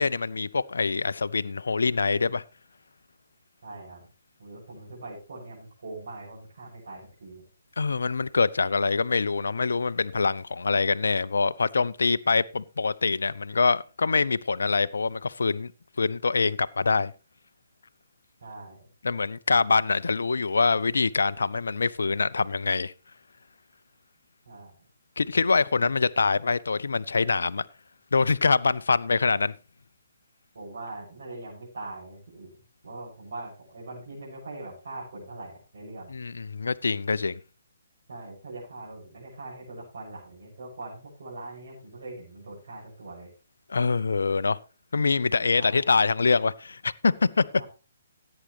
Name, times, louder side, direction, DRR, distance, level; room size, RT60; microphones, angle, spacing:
voice 1, 0.0-2.4 7.8-15.7 16.0-17.1 19.0-22.9 25.2-27.6 28.1-29.5 36.1-37.4 43.7-44.6 44.9-47.4, left 4 dB, 65° left, 0.5 m, -24 dB
voice 2, 3.6-4.0 4.4-7.4 18.4-18.9 24.5-24.7 30.5-32.5 32.8-36.1 38.1-43.3 45.6-45.8 47.5-47.6, right 2 dB, 55° right, 6.7 m, -42 dB
16.0 x 8.8 x 3.3 m
figure-of-eight pair, 130°, 0 cm